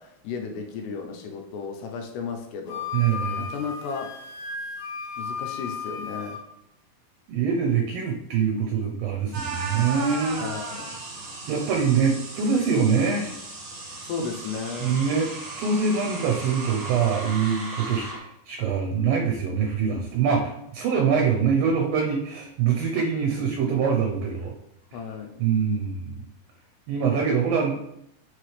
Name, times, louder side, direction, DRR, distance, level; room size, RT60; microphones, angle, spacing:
voice 1, 0.0-2.9 3.4-4.2 5.2-6.4 10.4-11.0 14.0-15.0 24.9-25.4, left 5 dB, 85° left, 3 dB, 3.1 m, -34 dB
Wind instrument woodwind instrument, 2.7-6.4, left 5 dB, 70° left, 2.4 m, -34 dB
voice 2, 2.9-3.4 7.3-10.5 11.5-13.3 14.8-15.3 15.6-24.6 25.4-26.2 26.9-27.8, right 6 dB, 75° right, 0 dB, 2.2 m, -24 dB
sound 1, 9.3-18.2, right 3 dB, 50° right, 2.0 m, -36 dB
7.4 x 5.9 x 3.3 m, 0.79 s
omnidirectional pair, 4.8 m